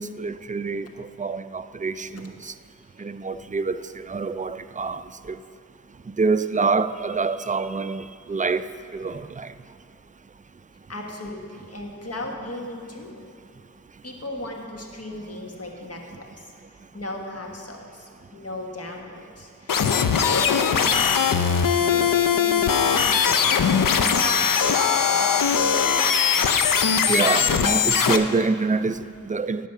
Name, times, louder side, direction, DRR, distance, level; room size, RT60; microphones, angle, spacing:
voice 1, 0.0-2.5 3.0-5.4 6.1-9.5 27.1-29.7, right 4 dB, 25° right, 0.4 m, -26 dB
voice 2, 10.9-13.2 14.0-16.5 16.9-24.8, left 1 dB, 45° left, 1.5 m, -37 dB
sound 1, 19.7-28.2, left 7 dB, 80° left, 0.5 m, -20 dB
10.5 x 5.7 x 7.6 m
wide cardioid pair, 45°, 33 cm